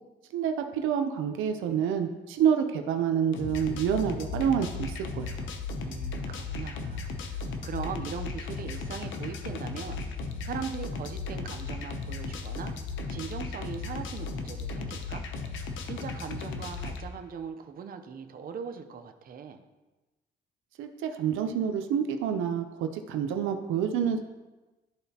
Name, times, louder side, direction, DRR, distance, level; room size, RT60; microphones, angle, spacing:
voice 1, 0.3-5.5 20.8-24.2, right 8 dB, 85° right, 6 dB, 0.6 m, -28 dB
sound 1, 3.3-17.0, left 4 dB, 75° left, 0.7 m, -36 dB
voice 2, 5.8-12.8 13.1-15.2 15.8-19.6, right 6 dB, 45° right, 7 dB, 0.6 m, -40 dB
11.5 x 3.9 x 2.8 m, 1.1 s
cardioid pair, 90°, 20 cm